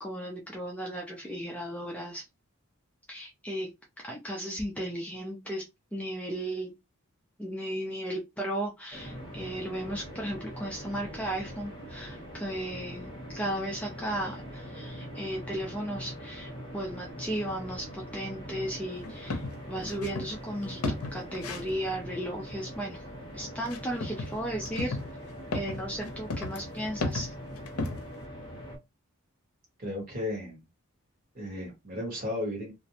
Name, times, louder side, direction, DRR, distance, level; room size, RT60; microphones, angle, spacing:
voice 1, 0.0-2.2 3.1-3.7 4.0-5.6 5.9-6.7 7.4-23.0 23.3-25.0 25.5-27.3, right 1 dB, 5° left, -1 dB, 0.3 m, -35 dB
sound 1, 8.9-28.8, equal, 20° left, 0.8 m, -42 dB
sound 2, 19.0-20.3 20.7-21.7 23.7-24.3 24.6-28.2, left 3 dB, 85° left, 0.5 m, -34 dB
voice 2, 29.8-30.6 31.3-32.7, left 1 dB, 40° right, 0 dB, 1.1 m, -34 dB
2.5 x 2.0 x 2.7 m, 0.22 s
head